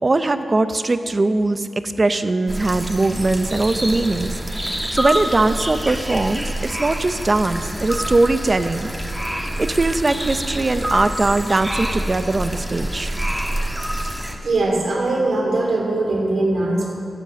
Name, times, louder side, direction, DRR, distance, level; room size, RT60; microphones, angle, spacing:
voice 1, 0.0-4.4 4.9-8.9 9.3-13.2, right 2 dB, 35° right, 10 dB, 0.6 m, -20 dB
sound 1, 2.5-14.4, right 1 dB, 5° right, 1.3 m, -27 dB
voice 2, 14.4-16.9, right 2 dB, 75° right, -2 dB, 3.0 m, -21 dB
12.5 x 8.2 x 7.6 m, 2.6 s
wide cardioid pair, 95°, 0 cm